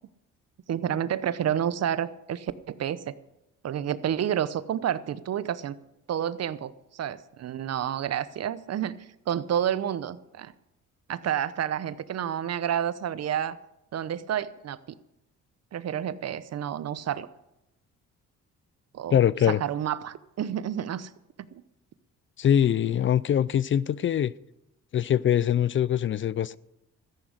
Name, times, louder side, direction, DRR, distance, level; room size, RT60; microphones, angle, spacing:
voice 1, 0.7-3.1 3.6-5.8 6.1-8.9 9.3-10.5 11.1-13.6 13.9-14.8 15.7-17.3 18.9-19.2 19.5-21.1 21.4-21.6, right 10 dB, 55° right, 0.8 m, -29 dB
voice 2, 19.1-19.6 22.4-24.3 24.9-26.6, left 10 dB, 40° left, 0.4 m, -23 dB
14.0 x 10.5 x 6.6 m
cardioid pair, 90°, 30 cm